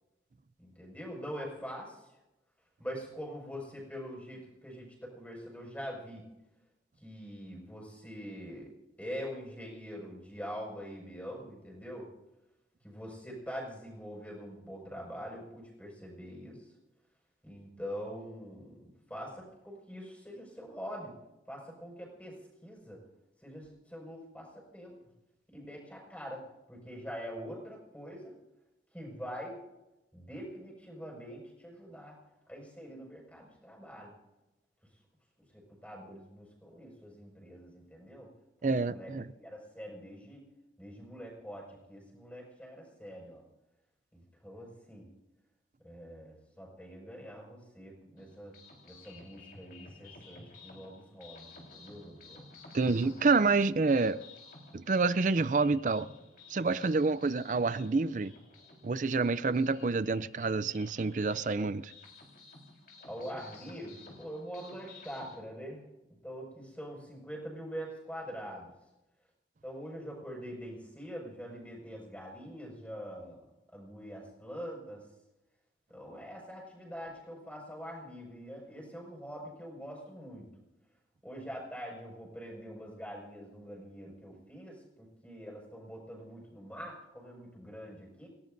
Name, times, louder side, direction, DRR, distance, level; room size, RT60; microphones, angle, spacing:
voice 1, 0.6-2.1 2.8-6.2 7.0-8.7 9.0-12.1 12.8-16.6 17.4-21.1 21.5-23.0 23.4-24.9 25.5-26.4 26.7-28.3 28.9-29.6 30.1-32.1 32.5-34.1 35.5-38.3 38.6-39.1 39.4-40.4 40.8-43.4 44.1-45.1 45.8-48.5 48.9-52.4 63.0-65.8 66.2-68.7 69.6-73.4 73.7-75.1 75.9-80.5 81.2-88.3, equal, 10° left, 5.8 m, -44 dB
voice 2, 38.6-39.3 52.7-54.2 54.7-56.1 56.5-58.3 58.8-61.9, right 3 dB, 45° right, 0.5 m, -28 dB
sound 1, 48.2-65.4, left 3 dB, 50° left, 4.3 m, -54 dB
29.0 x 17.0 x 2.7 m
head